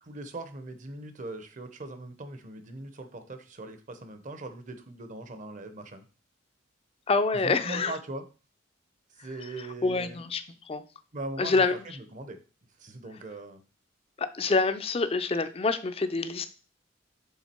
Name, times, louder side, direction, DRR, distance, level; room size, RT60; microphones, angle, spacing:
voice 1, 0.0-6.0 7.3-8.2 9.2-10.2 11.1-11.6 11.9-12.4 12.8-13.6, right 2 dB, 40° right, 9 dB, 0.8 m, -40 dB
voice 2, 7.1-8.0 9.6-10.8 11.4-11.8 14.2-16.5, left 3 dB, 30° left, 11 dB, 0.4 m, -27 dB
7.1 x 3.7 x 4.4 m, 0.37 s
head